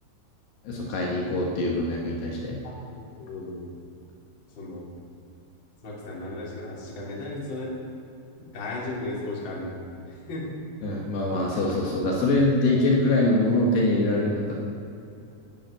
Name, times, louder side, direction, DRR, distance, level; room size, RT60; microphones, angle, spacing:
voice 1, 0.6-2.6 10.8-14.5, left 2 dB, 70° left, -2 dB, 3.4 m, -24 dB
voice 2, 3.2-3.7 4.6-4.9 5.8-7.7 8.4-9.8 10.1-10.5, left 2 dB, 30° left, -3 dB, 2.9 m, -35 dB
11.5 x 10.5 x 9.5 m, 2.7 s
omnidirectional pair, 5.3 m